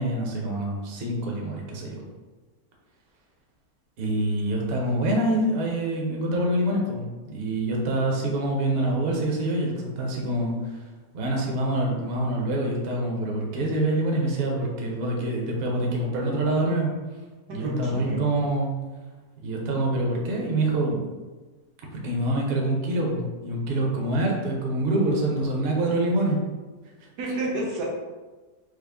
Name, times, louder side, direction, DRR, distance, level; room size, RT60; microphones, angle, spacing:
voice 1, 0.0-2.0 4.0-10.8 11.1-16.9 17.5-18.7 19.4-21.1 21.9-26.4 27.0-27.1, right 1 dB, 50° right, -1 dB, 0.8 m, -26 dB
voice 2, 17.5-18.2 27.2-27.8, right 1 dB, 85° right, -4 dB, 1.5 m, -29 dB
4.9 x 2.0 x 3.4 m, 1.3 s
omnidirectional pair, 1.6 m